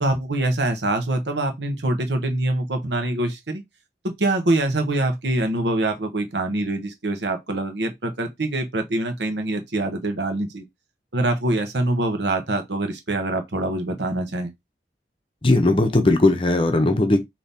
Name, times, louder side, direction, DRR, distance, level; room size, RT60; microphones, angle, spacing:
voice 1, 0.0-3.6 4.0-10.6 11.1-14.5, right 2 dB, 80° right, 1.0 m, -24 dB
voice 2, 15.4-17.2, left 2 dB, 30° left, 0.7 m, -18 dB
4.1 x 2.8 x 3.5 m
head